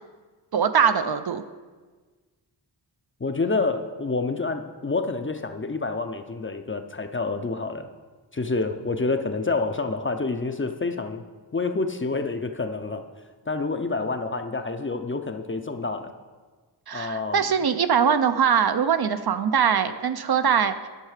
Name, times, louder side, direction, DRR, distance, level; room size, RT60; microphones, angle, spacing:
voice 1, 0.5-1.4 16.9-20.7, right 7 dB, 55° right, 10 dB, 0.5 m, -22 dB
voice 2, 3.2-7.9 8.3-11.2 11.5-13.0 13.5-16.1 16.9-17.4, left 3 dB, 25° left, 7 dB, 0.5 m, -28 dB
11.0 x 6.5 x 4.9 m, 1.4 s
wide cardioid pair, 105°, 45 cm